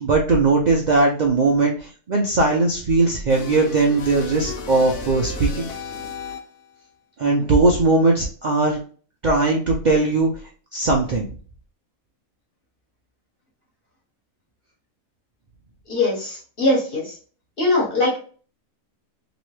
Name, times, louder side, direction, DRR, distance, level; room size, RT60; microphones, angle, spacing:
voice 1, 0.0-5.7 7.2-8.8 9.2-10.3 10.7-11.2, right 3 dB, 80° right, -1 dB, 0.4 m, -19 dB
sound 1, 3.3-6.7, left 5 dB, 70° left, 1.2 m, -34 dB
voice 2, 15.9-17.2 17.6-18.2, left 2 dB, 40° left, -3 dB, 1.4 m, -21 dB
3.0 x 3.0 x 3.1 m, 0.41 s
omnidirectional pair, 1.5 m